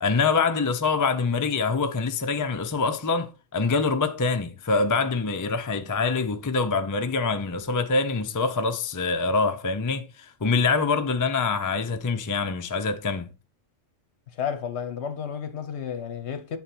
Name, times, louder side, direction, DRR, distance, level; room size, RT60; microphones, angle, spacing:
voice 1, 0.0-13.3, left 4 dB, 30° left, 0.3 m, -25 dB
voice 2, 14.4-16.6, left 7 dB, 65° left, 1.1 m, -32 dB
7.9 x 4.1 x 4.3 m
omnidirectional pair, 1.3 m